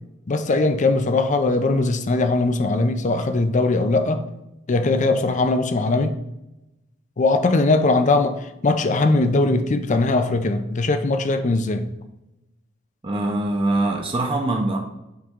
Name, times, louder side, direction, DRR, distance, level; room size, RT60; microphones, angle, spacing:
voice 1, 0.3-4.2 4.7-6.2 7.2-11.8, left 2 dB, 40° left, 0.5 m, -20 dB
voice 2, 13.0-14.8, right 2 dB, 25° right, 0.6 m, -23 dB
7.9 x 3.6 x 3.6 m
head